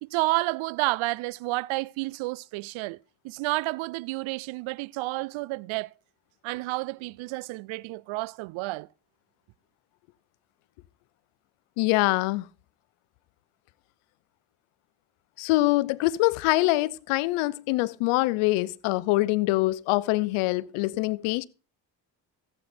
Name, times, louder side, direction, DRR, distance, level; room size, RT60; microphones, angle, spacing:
voice 1, 0.0-3.0 3.2-5.9 6.4-8.9, right 22 dB, 70° right, 0.6 m, -30 dB
voice 2, 11.8-12.5 15.4-21.5, left 19 dB, 80° left, 0.7 m, -24 dB
14.5 x 8.1 x 4.3 m
supercardioid pair, 65°, 49 cm